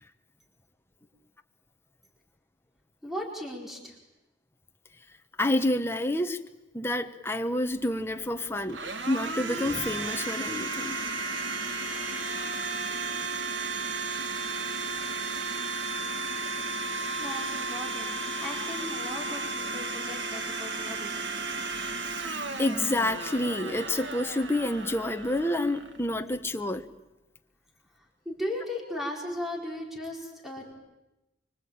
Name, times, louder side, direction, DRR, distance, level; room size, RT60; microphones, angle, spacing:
voice 1, 3.0-4.0 14.9-15.0 17.2-21.3 27.9-30.7, left 1 dB, ahead, -1 dB, 4.6 m, -37 dB
voice 2, 5.4-6.4 6.7-11.0 22.2-26.9, left 1 dB, 15° left, 6 dB, 1.3 m, -29 dB
Domestic sounds home sounds, 7.7-26.5, right 3 dB, 90° right, 1.8 m, -34 dB
25.0 x 25.0 x 8.9 m, 0.98 s
head